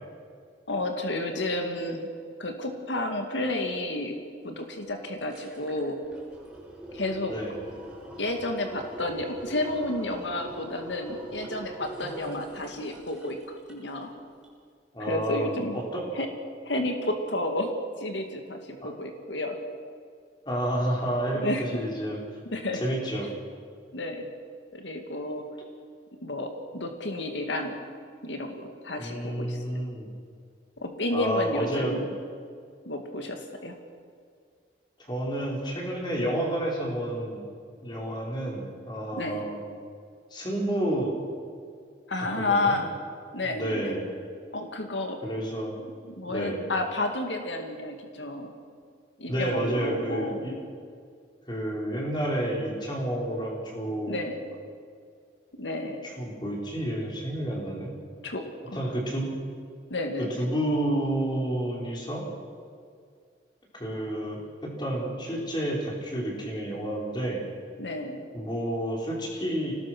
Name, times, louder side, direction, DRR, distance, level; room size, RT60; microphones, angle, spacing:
voice 1, 0.7-2.1 2.4-6.0 6.9-7.3 8.2-14.1 15.0-15.8 16.1-16.3 16.6-19.6 21.4-21.8 22.5-22.8 23.9-24.3 24.7-25.5 26.2-27.9 28.2-29.6 30.8-32.1 32.9-33.8 39.1-39.5 42.1-42.9 43.3-43.9 44.5-45.2 46.1-48.6 49.2-50.5 54.1-54.4 55.6-56.0 58.2-58.9 59.9-60.5 67.8-68.3, left 2 dB, 85° left, 4 dB, 2.3 m, -31 dB
sound 1, 4.6-4.7 5.0-14.1 14.4-14.5, right 1 dB, 5° right, 5.9 m, -43 dB
voice 2, 14.9-16.0 18.8-18.9 20.4-22.2 22.7-23.3 29.0-30.1 31.1-32.0 35.0-37.4 37.8-39.6 40.3-41.1 42.2-42.7 43.5-44.1 45.2-45.7 46.3-46.6 49.3-50.5 51.5-54.2 56.2-57.9 58.7-59.3 60.4-62.2 63.7-67.4 68.3-69.8, right 1 dB, 25° left, -2 dB, 4.9 m, -30 dB
25.0 x 19.0 x 6.2 m, 2.2 s
head